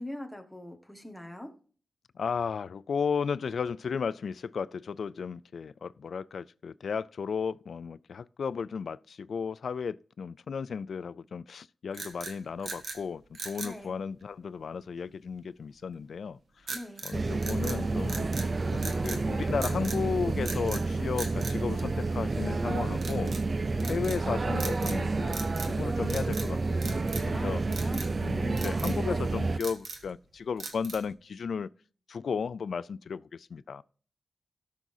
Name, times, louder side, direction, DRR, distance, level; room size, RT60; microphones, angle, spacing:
voice 1, 0.0-1.5 13.6-14.0 16.7-17.1 23.8-24.1 27.3-28.8, left 1 dB, 5° left, 1.4 m, -42 dB
voice 2, 2.2-16.4 17.0-23.3 23.9-27.6 28.2-31.7 32.1-33.8, left 6 dB, 70° left, 0.3 m, -34 dB
sound 1, 11.9-13.0 13.3-13.8 16.7-17.2 17.4-18.5 18.8-19.2 19.6-20.0 20.4-20.9 21.2-22.4 23.0-23.4 23.8-24.2 24.6-25.0 25.3-25.8 26.0-26.5 26.8-27.4 27.7-28.1 28.6-29.0 29.4-30.1 30.6-31.1, right 4 dB, 60° right, 1.3 m, -40 dB
sound 2, 17.1-29.6, right 3 dB, 35° right, 0.4 m, -30 dB
18.0 x 6.2 x 2.7 m
wide cardioid pair, 165°, 0 cm